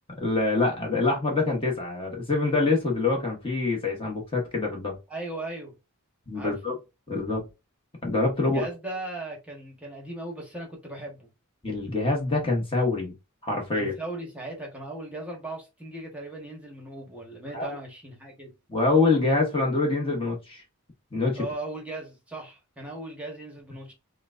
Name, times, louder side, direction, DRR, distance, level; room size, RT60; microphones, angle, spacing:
voice 1, 0.2-5.0 6.3-6.7 7.1-7.4 8.0-8.6 11.6-13.1 13.4-13.9 17.5-17.8 18.7-20.6 21.1-21.4, left 3 dB, 25° left, 1.0 m, -25 dB
voice 2, 5.1-5.8 6.3-6.6 8.4-11.3 13.7-18.5 21.3-23.9, right 2 dB, 5° right, 1.1 m, -37 dB
5.8 x 2.2 x 2.5 m
head